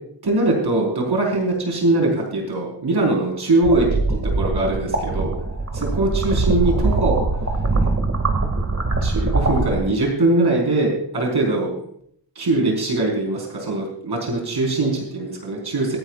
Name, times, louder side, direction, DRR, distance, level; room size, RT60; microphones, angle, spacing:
voice 1, 0.2-5.3 5.7-7.2 8.5-8.6 9.0-11.7 12.3-16.0, right 2 dB, 60° right, -1 dB, 4.7 m, -21 dB
sound 1, 3.6-9.8, right 3 dB, 35° right, 2.2 m, -22 dB
26.0 x 10.5 x 2.5 m, 0.67 s
wide cardioid pair, 105°, 44 cm